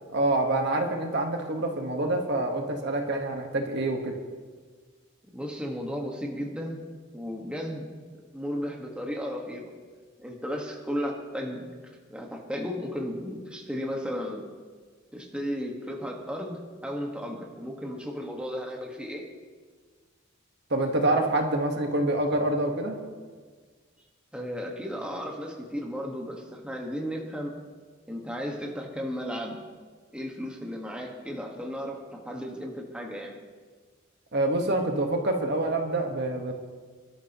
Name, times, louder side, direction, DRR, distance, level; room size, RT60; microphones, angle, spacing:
voice 1, 0.1-4.2 20.7-23.0 34.3-36.5, right 2 dB, 55° right, 3 dB, 1.5 m, -26 dB
voice 2, 5.3-6.8 7.1-7.9 8.3-9.7 10.2-11.7 12.1-14.5 15.1-19.3 21.2-21.3 24.3-27.6 28.1-29.6 30.1-33.4, equal, 5° right, 0 dB, 1.5 m, -34 dB
25.0 x 12.5 x 3.0 m, 1.5 s
head